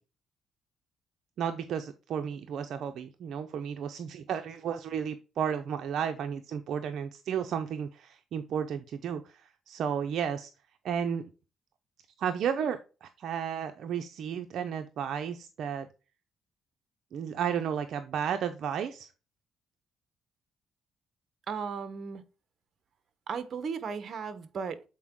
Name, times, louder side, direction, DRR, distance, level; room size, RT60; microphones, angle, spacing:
voice 1, 1.4-10.5 10.8-11.3 12.2-15.9 17.1-19.1, right 8 dB, 65° right, 0.6 m, -33 dB
voice 2, 21.5-22.2 23.3-24.8, right 6 dB, 50° right, 0.9 m, -35 dB
7.5 x 4.5 x 3.6 m
cardioid pair, 90°, 0 cm